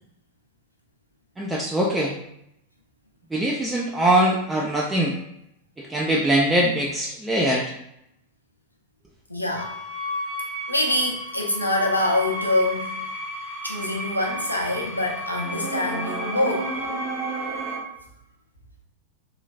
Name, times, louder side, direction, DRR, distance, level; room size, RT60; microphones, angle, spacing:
voice 1, 1.4-2.1 3.3-5.1 5.8-7.7, right 1 dB, 10° right, -2 dB, 0.3 m, -22 dB
voice 2, 9.3-9.8 10.7-13.0 13.6-16.7, left 1 dB, 85° left, 0 dB, 0.5 m, -25 dB
sound 1, 9.6-17.8, right 1 dB, 55° right, 0.8 m, -32 dB
3.1 x 2.3 x 2.3 m, 0.78 s
figure-of-eight pair, 90°, 0 cm